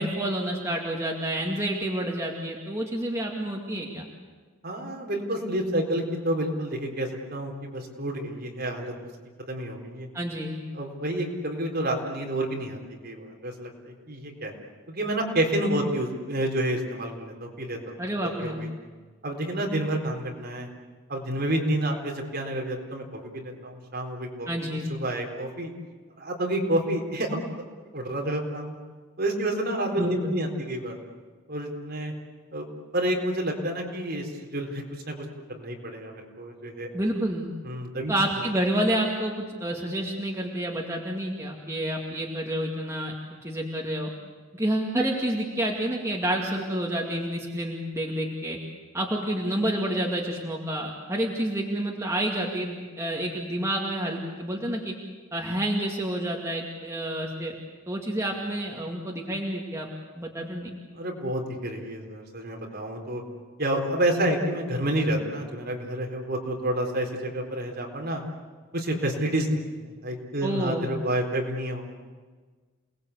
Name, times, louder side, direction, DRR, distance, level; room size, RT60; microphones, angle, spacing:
voice 1, 0.0-4.1 10.1-10.6 18.0-18.6 24.5-24.9 30.0-30.3 36.9-37.5 38.1-43.1 43.4-44.1 44.5-48.6 48.9-54.9 55.3-57.5 57.9-59.9 60.1-60.7 70.4-70.9, right 1 dB, 15° right, -1 dB, 2.3 m, -29 dB
voice 2, 4.6-8.9 9.5-10.1 10.7-14.5 14.9-18.0 18.4-18.7 19.2-20.7 21.1-25.7 26.2-27.4 27.9-28.7 29.2-30.9 31.5-32.1 32.5-32.7 32.9-36.9 37.6-38.1 60.9-63.2 63.6-68.2 68.7-71.9, right 1 dB, 50° right, 1 dB, 4.0 m, -29 dB
28.5 x 19.5 x 8.3 m, 1.4 s
head